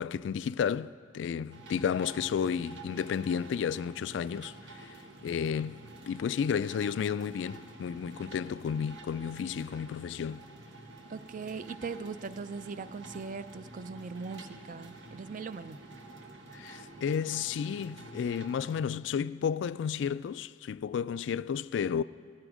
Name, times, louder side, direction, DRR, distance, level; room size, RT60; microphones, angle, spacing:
voice 1, 0.0-4.9 5.2-10.5 16.5-22.0, left 7 dB, 75° left, 0.3 m, -32 dB
sound 1, 1.5-18.7, right 2 dB, 85° right, 1.3 m, -49 dB
voice 2, 11.1-15.8, right 5 dB, 45° right, 0.5 m, -40 dB
17.5 x 14.5 x 5.0 m
head